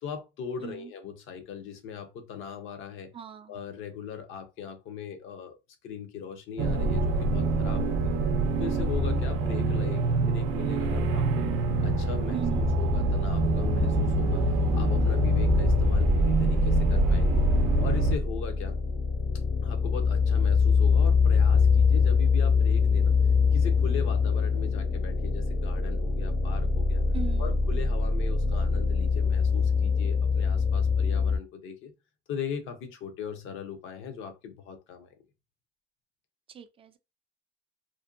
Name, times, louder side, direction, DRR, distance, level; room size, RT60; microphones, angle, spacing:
voice 1, 0.0-3.1 3.5-5.6 5.8-8.2 8.6-11.5 11.8-14.4 14.7-17.5 17.8-18.8 19.6-23.1 23.5-27.0 27.4-31.9 32.3-35.2, left 7 dB, 70° left, 0.7 m, -39 dB
voice 2, 3.1-3.5 12.3-12.6 27.1-27.6 36.5-37.0, right 8 dB, 25° right, 0.3 m, -38 dB
sound 1, 6.6-18.2, right 3 dB, 85° right, 0.5 m, -26 dB
sound 2, 13.1-31.4, left 5 dB, 25° left, 0.5 m, -24 dB
2.5 x 2.2 x 2.5 m
cardioid pair, 125°, 21 cm